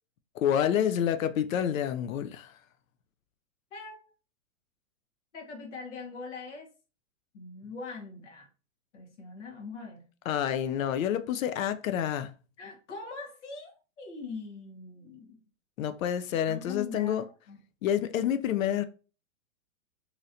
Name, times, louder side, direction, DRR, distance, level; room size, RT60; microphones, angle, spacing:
voice 1, 0.4-2.5 10.3-12.3 15.8-17.2 17.8-18.8, left 9 dB, 80° left, 0.5 m, -28 dB
voice 2, 3.7-4.0 5.3-6.7 7.3-8.5 8.9-10.0 12.6-15.4 16.5-17.6, left 4 dB, 60° left, 1.3 m, -42 dB
3.0 x 2.8 x 2.5 m
hypercardioid pair, 160°, 40 cm